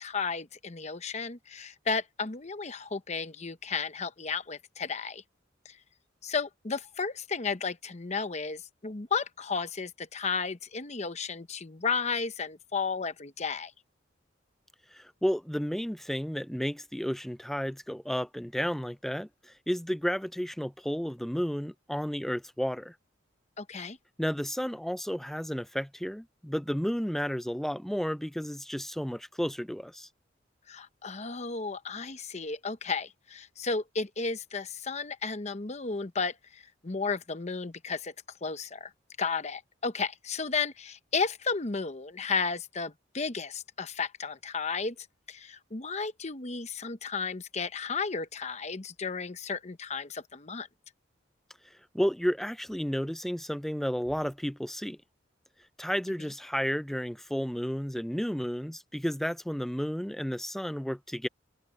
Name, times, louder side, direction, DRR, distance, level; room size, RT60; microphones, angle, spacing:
voice 1, 0.0-5.2 5.6-5.8 6.2-13.7 23.6-24.0 30.7-38.1 38.4-38.9 39.2-44.9 45.3-50.7, left 5 dB, 35° left, 0.9 m, -33 dB
voice 2, 14.9-22.9 24.2-30.1 51.9-55.0 55.8-61.3, equal, ahead, 0.4 m, -32 dB
head